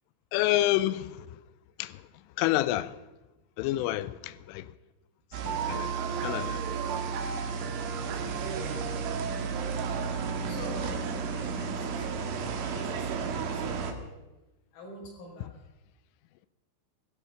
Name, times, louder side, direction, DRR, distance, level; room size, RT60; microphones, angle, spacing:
voice 1, 0.3-1.2 1.8-2.0 2.4-2.9 3.6-4.7 5.4-6.6, left 15 dB, 90° left, 3.2 m, -28 dB
sound 1, 5.3-13.9, right 5 dB, 70° right, 3.2 m, -32 dB
voice 2, 7.7-8.4 9.3-9.8 10.1-14.1 14.7-15.5, equal, 50° left, 6.6 m, -46 dB
16.5 x 14.5 x 5.6 m
omnidirectional pair, 5.6 m